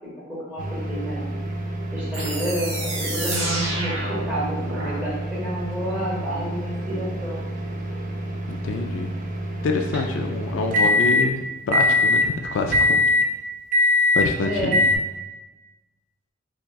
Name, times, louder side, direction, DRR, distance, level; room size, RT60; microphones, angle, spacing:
voice 1, 0.3-1.2 1.9-7.4 14.4-14.8, right 1 dB, 5° right, -9 dB, 1.4 m, -30 dB
sound 1, 0.6-11.3 11.7-12.3 12.7-13.3 13.7-14.3 14.7-15.0, left 2 dB, 40° right, 0.4 m, -24 dB
sound 2, 2.1-5.0, right 1 dB, 65° right, 1.2 m, -30 dB
voice 2, 8.5-9.1 9.6-13.0 14.1-15.0, left 3 dB, 75° left, 3 dB, 0.3 m, -26 dB
5.9 x 2.3 x 2.2 m, 1.1 s
head